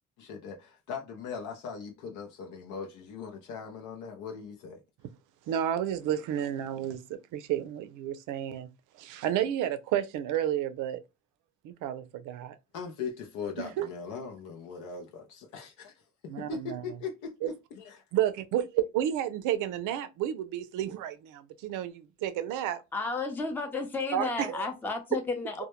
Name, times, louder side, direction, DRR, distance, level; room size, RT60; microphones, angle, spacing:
voice 1, 0.2-4.8 12.7-15.9 16.4-18.0, left 5 dB, 85° left, 0.6 m, -40 dB
voice 2, 5.5-8.7 9.0-11.0 11.6-12.6 13.6-13.9 16.3-16.8 17.4-17.5 18.1-22.8 24.1-24.7, right 11 dB, 90° right, 0.5 m, -31 dB
voice 3, 22.9-25.7, left 3 dB, 5° left, 0.5 m, -32 dB
2.1 x 2.1 x 2.9 m
cardioid pair, 90°, 30 cm